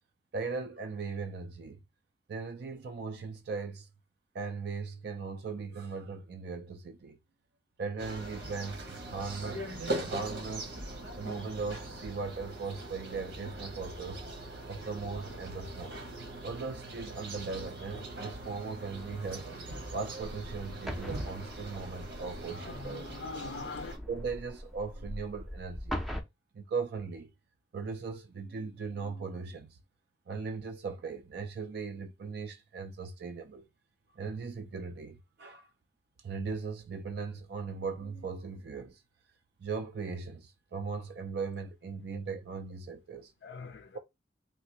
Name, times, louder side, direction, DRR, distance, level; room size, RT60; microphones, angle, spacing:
voice 1, 0.3-1.8 2.3-3.9 4.3-7.2 7.8-9.7 10.0-10.7 11.2-14.2 14.7-16.0 16.4-19.5 19.9-23.1 24.1-26.0 26.5-27.3 27.7-29.8 30.3-33.7 34.1-35.7 36.2-39.0 39.6-43.3, right 4 dB, 60° right, 0.4 m, -38 dB
sound 1, 8.0-24.0, right 1 dB, 75° right, 1.3 m, -41 dB
sound 2, 20.2-26.2, equal, ahead, 0.5 m, -41 dB
voice 2, 22.6-23.9 43.4-44.0, left 4 dB, 60° left, 0.3 m, -42 dB
3.3 x 2.5 x 2.8 m
head